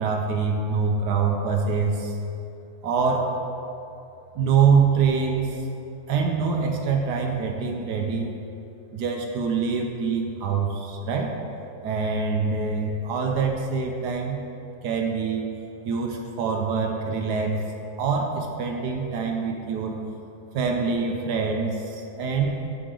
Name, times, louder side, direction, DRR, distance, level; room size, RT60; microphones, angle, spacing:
voice 1, 0.0-2.2 2.8-3.3 4.3-5.6 6.1-8.4 8.9-11.4 11.8-14.4 14.8-15.4 15.8-17.6 18.0-20.0 20.5-22.5, right 5 dB, 80° right, 2 dB, 1.3 m, -24 dB
13.5 x 4.9 x 3.8 m, 2.8 s
omnidirectional pair, 1.8 m